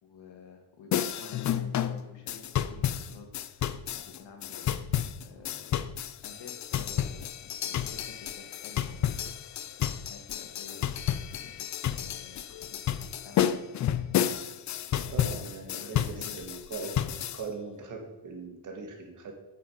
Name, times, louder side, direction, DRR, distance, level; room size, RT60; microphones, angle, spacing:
voice 1, 0.0-3.6 3.9-4.9 5.2-5.7 6.2-9.0 10.1-11.1 11.4-13.7 14.9-15.3 15.7-16.5, left 4 dB, 70° left, 2 dB, 2.2 m, -50 dB
sound 1, 0.9-17.4, left 10 dB, 40° left, 0.4 m, -31 dB
voice 2, 15.1-17.0 17.3-19.3, right 4 dB, 40° right, 2 dB, 1.9 m, -40 dB
9.0 x 7.8 x 5.0 m, 1.0 s
cardioid pair, 180°, 45 cm